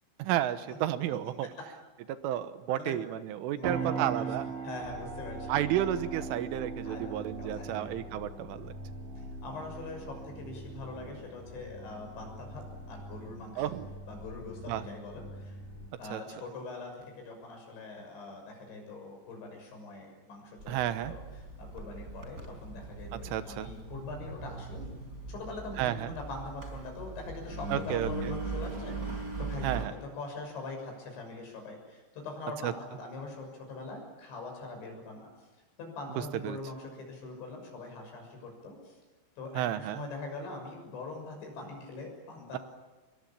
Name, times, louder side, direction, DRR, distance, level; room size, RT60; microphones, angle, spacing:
voice 1, 0.2-1.5 2.1-4.5 5.5-8.7 13.6-13.9 14.7-14.8 16.1-16.2 20.7-21.1 23.1-23.7 25.8-26.1 27.7-28.3 29.6-30.0 32.6-32.7 36.4-36.6 39.6-40.0, right 12 dB, 90° right, 11 dB, 3.7 m, -32 dB
voice 2, 3.5-5.7 6.2-6.3 6.9-7.9 9.2-13.8 14.1-15.6 16.0-21.2 21.6-24.9 25.3-35.5 35.8-39.0 39.4-42.6, left 3 dB, 70° left, 3 dB, 8.8 m, -43 dB
sound 1, 3.6-13.4, right 6 dB, 65° right, 5.1 m, -41 dB
sound 2, 4.8-15.9, left 1 dB, 35° left, 6.5 m, -46 dB
Engine, 20.6-29.8, right 3 dB, 20° right, 4.4 m, -40 dB
26.5 x 22.0 x 8.9 m, 1.2 s
omnidirectional pair, 5.5 m